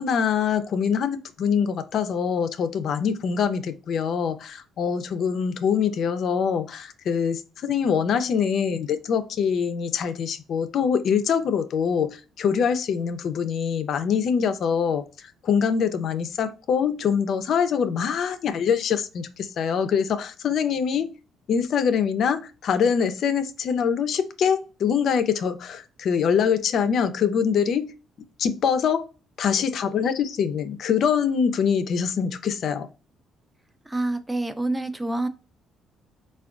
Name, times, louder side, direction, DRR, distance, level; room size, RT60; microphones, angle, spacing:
voice 1, 0.0-21.1 21.5-27.9 28.4-29.0 29.4-32.9, left 7 dB, 60° left, 0.3 m, -24 dB
voice 2, 33.9-35.3, right 2 dB, 15° right, 0.3 m, -27 dB
3.4 x 2.2 x 2.4 m
cardioid pair, 85°, 0 cm